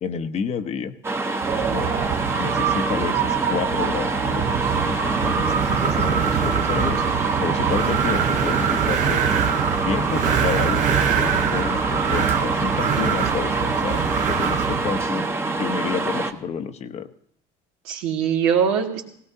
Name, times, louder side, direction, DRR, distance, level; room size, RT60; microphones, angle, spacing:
voice 1, 0.0-0.9 1.7-1.9 2.4-9.2 9.8-14.0 14.3-15.2 15.6-17.1, left 7 dB, 45° left, 9 dB, 0.9 m, -30 dB
sound 1, 1.0-16.3, right 3 dB, 15° right, 1.0 m, -26 dB
Wind, 1.4-15.1, right 7 dB, 60° right, 1.4 m, -24 dB
voice 2, 15.0-15.6 17.9-19.0, right 7 dB, 85° right, 1 dB, 2.0 m, -23 dB
17.0 x 17.0 x 2.8 m, 0.70 s
supercardioid pair, 100°, 15 cm